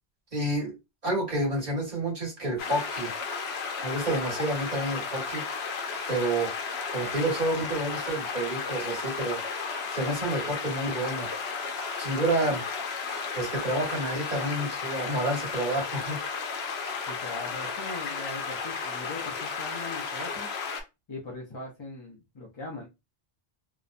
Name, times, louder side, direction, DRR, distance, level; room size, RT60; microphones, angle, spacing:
voice 1, 0.3-0.7 1.0-3.1 3.8-5.4 6.1-6.5 6.9-9.4 9.9-11.3 12.0-12.6 13.3-16.2, right 1 dB, 40° right, -3 dB, 1.5 m, -29 dB
sound 1, 2.6-20.8, left 5 dB, 80° left, 0.8 m, -34 dB
voice 2, 17.1-20.5 21.1-22.9, left 2 dB, 35° left, -2 dB, 0.4 m, -40 dB
2.8 x 2.0 x 2.5 m, 0.24 s
omnidirectional pair, 1.1 m